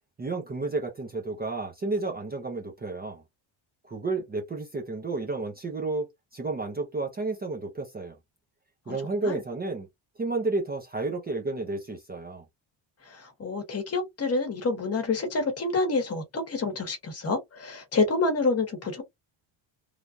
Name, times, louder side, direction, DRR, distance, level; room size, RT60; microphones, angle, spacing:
voice 1, 0.2-3.2 3.9-8.1 8.9-9.9 10.2-12.4, right 3 dB, 20° right, 0.6 m, -31 dB
voice 2, 13.1-19.0, left 3 dB, 30° left, 1.1 m, -28 dB
3.3 x 2.3 x 2.5 m
cardioid pair, 180°, 47 cm